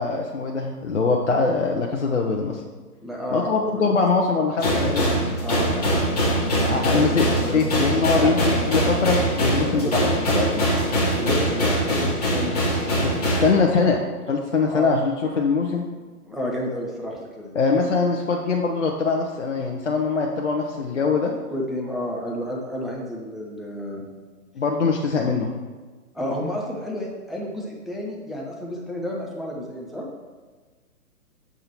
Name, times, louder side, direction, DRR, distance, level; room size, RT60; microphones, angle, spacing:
voice 1, 0.0-2.6 3.3-5.2 6.6-10.6 13.0-15.8 17.5-21.3 24.5-25.5, left 4 dB, 50° left, 0 dB, 0.6 m, -23 dB
voice 2, 3.0-3.9 5.4-5.9 6.8-7.1 7.4-7.7 8.2-8.4 9.4-10.0 11.2-12.6 14.6-15.0 16.2-17.5 21.5-24.1 26.1-30.1, equal, ahead, -3 dB, 0.4 m, -31 dB
sound 1, 4.6-13.5, equal, 25° left, 1.1 m, -22 dB
6.9 x 3.6 x 4.3 m, 1.4 s
hypercardioid pair, 180°, 46 cm